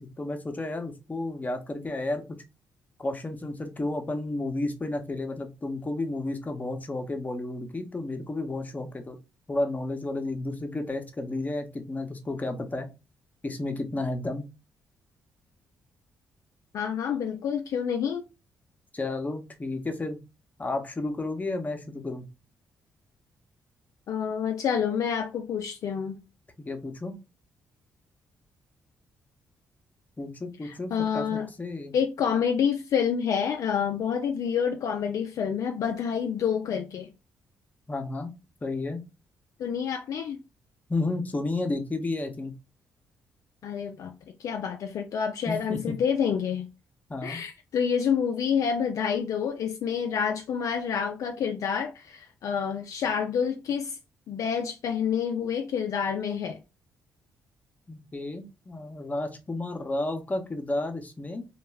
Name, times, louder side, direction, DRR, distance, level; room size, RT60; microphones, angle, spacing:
voice 1, 0.0-2.4 3.0-9.2 9.5-12.9 13.4-14.4 18.9-20.2 20.6-22.3 26.6-27.2 30.2-31.9 37.9-38.3 38.6-39.0 40.9-42.5 45.5-45.9 47.1-47.4 57.9-61.4, left 2 dB, 25° left, 0.7 m, -32 dB
voice 2, 16.7-18.2 24.1-26.2 30.6-31.5 31.9-37.1 39.6-40.4 43.6-44.1 44.4-46.7 47.2-54.0 54.3-56.6, left 7 dB, 60° left, 0.3 m, -28 dB
2.3 x 2.0 x 3.2 m
supercardioid pair, 50°, 6 cm